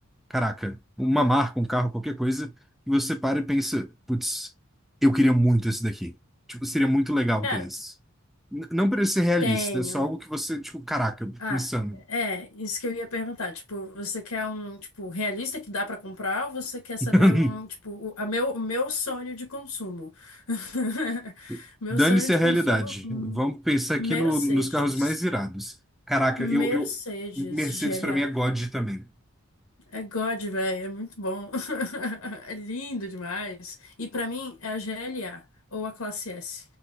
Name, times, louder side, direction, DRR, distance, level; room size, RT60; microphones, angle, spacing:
voice 1, 0.3-2.5 2.9-4.5 5.0-6.1 6.5-7.9 8.5-12.0 17.0-17.6 21.5-21.6 21.9-25.7 26.1-26.9 27.4-29.1, equal, ahead, 0.4 m, -25 dB
voice 2, 9.4-10.1 11.4-11.6 12.1-23.4 24.0-25.1 26.4-28.3 29.9-35.4 35.7-36.6, left 2 dB, 90° left, 1.6 m, -32 dB
4.1 x 3.0 x 2.8 m
head